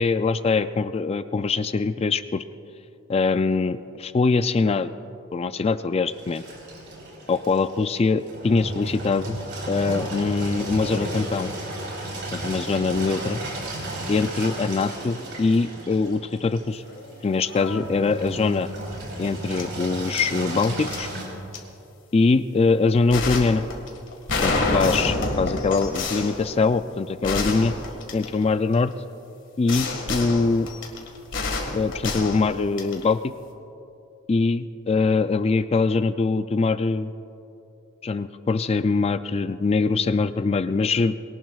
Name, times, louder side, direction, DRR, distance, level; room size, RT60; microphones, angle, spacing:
voice 1, 0.0-2.4 3.1-4.9 5.3-6.4 7.3-9.4 9.7-11.5 12.3-13.4 14.1-16.8 17.2-18.7 19.2-21.1 22.1-23.6 24.4-27.7 28.1-28.9 29.6-30.7 31.7-33.2 34.3-37.1 38.0-41.1, left 4 dB, 30° left, 12 dB, 0.3 m, -23 dB
Engine, 6.1-21.2, right 1 dB, 60° right, 3.7 m, -34 dB
sound 1, 16.9-17.1 17.4-17.8 19.6-19.7 20.2-21.0 21.5-21.6 23.1-28.7 29.7-33.1, left 3 dB, 65° left, 1.8 m, -28 dB
22.0 x 18.5 x 2.4 m, 2.7 s
head